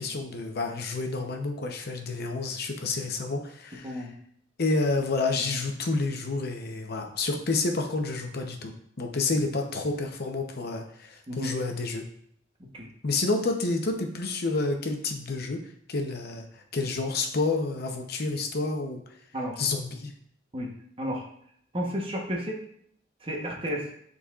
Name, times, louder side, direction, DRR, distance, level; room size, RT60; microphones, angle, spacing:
voice 1, 0.0-4.1 4.6-12.0 13.0-15.6 15.9-19.0 19.6-20.1, left 3 dB, 55° left, 3 dB, 0.8 m, -29 dB
voice 2, 21.7-22.6 23.2-23.8, equal, 30° right, -1 dB, 1.1 m, -32 dB
9.8 x 4.1 x 2.4 m, 0.68 s
head